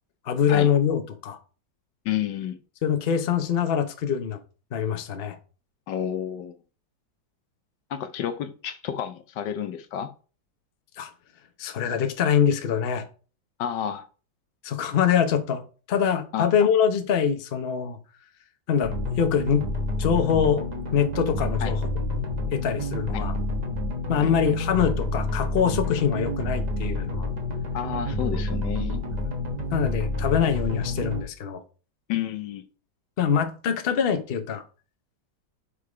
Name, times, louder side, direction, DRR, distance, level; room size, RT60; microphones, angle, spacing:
voice 1, 0.3-1.4 2.8-4.4 4.7-5.4 11.0-11.1 11.6-13.0 14.6-15.6 15.9-18.0 18.7-19.6 20.0-20.7 20.9-21.8 22.5-23.3 24.1-27.3 29.7-31.6 33.2-34.6, left 8 dB, 45° left, 0.8 m, -24 dB
voice 2, 2.0-2.6 5.9-6.6 7.9-10.1 13.6-14.1 16.3-16.5 21.6-21.7 23.1-23.2 24.2-24.3 27.7-29.0 32.1-32.6, left 10 dB, 75° left, 1.3 m, -30 dB
sound 1, 18.8-31.2, left 2 dB, 30° right, 0.8 m, -29 dB
5.6 x 5.0 x 4.9 m
omnidirectional pair, 2.0 m